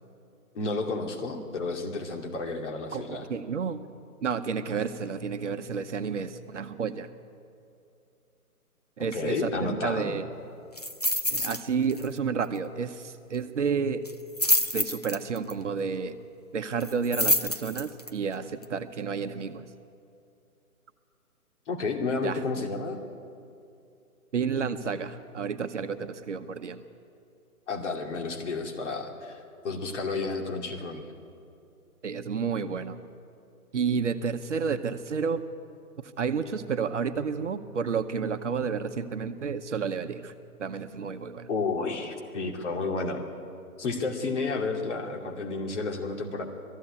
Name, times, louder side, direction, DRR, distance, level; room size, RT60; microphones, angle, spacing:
voice 1, 0.5-3.3 9.1-10.2 11.3-11.5 21.7-23.0 27.7-31.1 41.5-43.3 43.8-46.4, left 3 dB, 50° left, 3 dB, 2.6 m, -31 dB
voice 2, 2.9-3.9 4.2-7.1 9.0-10.3 11.3-14.1 14.7-16.2 16.5-19.7 22.2-22.6 24.3-26.8 32.0-33.0 33.7-35.4 36.0-40.3 40.6-41.5, right 6 dB, 50° right, 8 dB, 1.0 m, -31 dB
sound 1, 10.8-11.6 11.9-12.2 12.4-12.5 14.0-15.5 16.8-18.1 18.6-18.7, left 1 dB, 30° left, 0.4 m, -27 dB
19.0 x 15.0 x 9.7 m, 2.5 s
figure-of-eight pair, 145°, 45 cm